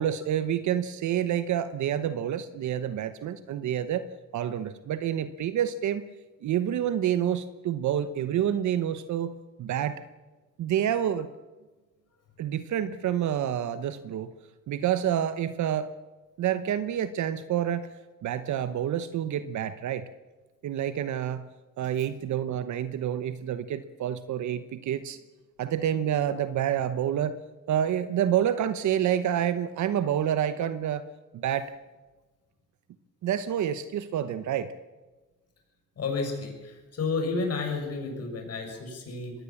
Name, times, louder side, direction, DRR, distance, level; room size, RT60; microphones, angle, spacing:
voice 1, 0.0-4.1 4.3-6.1 6.4-9.3 9.6-10.0 10.6-11.3 12.4-14.3 14.7-15.9 16.4-17.9 18.2-20.1 20.6-21.4 21.8-25.2 25.6-27.4 27.7-31.1 31.3-31.7 33.2-34.7, right 10 dB, 70° right, 12 dB, 1.0 m, -28 dB
voice 2, 36.0-39.3, left 4 dB, 55° left, 3 dB, 6.5 m, -31 dB
22.0 x 17.5 x 7.1 m, 1.2 s
cardioid pair, 90°, 30 cm